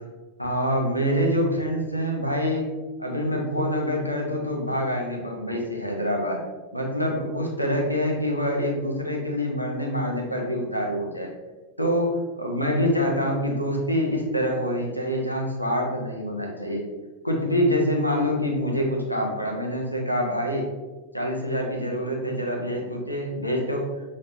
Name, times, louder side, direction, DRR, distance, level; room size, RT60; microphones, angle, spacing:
voice 1, 0.4-2.6 3.0-6.4 6.7-11.3 11.8-16.8 17.2-20.7 21.1-23.9, equal, 90° left, 0 dB, 0.8 m, -26 dB
5.9 x 3.2 x 2.6 m, 1.2 s
figure-of-eight pair, 90°, 0 cm